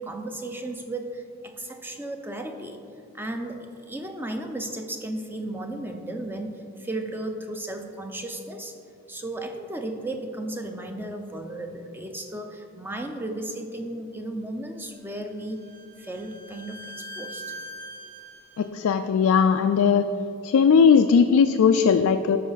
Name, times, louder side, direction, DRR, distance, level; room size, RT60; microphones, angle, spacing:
voice 1, 0.0-2.8 3.1-8.8 9.1-15.6 16.0-17.6, right 1 dB, 10° right, 5 dB, 0.5 m, -34 dB
Bowed string instrument, 14.9-18.7, equal, 45° right, 0.7 m, -42 dB
voice 2, 18.6-20.1 20.4-22.4, left 6 dB, 90° left, 7 dB, 0.3 m, -18 dB
13.0 x 5.5 x 4.0 m, 2.8 s
head